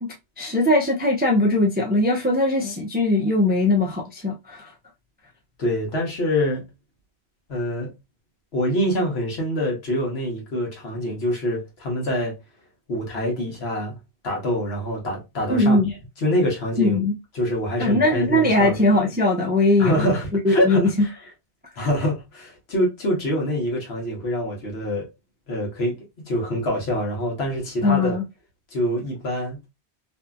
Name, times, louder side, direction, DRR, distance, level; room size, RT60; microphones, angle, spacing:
voice 1, 0.0-4.7 15.5-15.9 16.8-17.2 17.8-20.1 20.4-20.9 27.8-28.2, left 2 dB, 15° right, 0.3 m, -20 dB
voice 2, 5.6-6.7 7.5-7.9 8.5-12.4 12.9-14.0 14.2-15.8 16.2-17.0 17.3-18.8 19.8-21.1 21.8-25.1 25.5-28.2 28.7-29.6, equal, 70° left, 1.3 m, -25 dB
2.7 x 2.6 x 2.2 m
omnidirectional pair, 1.1 m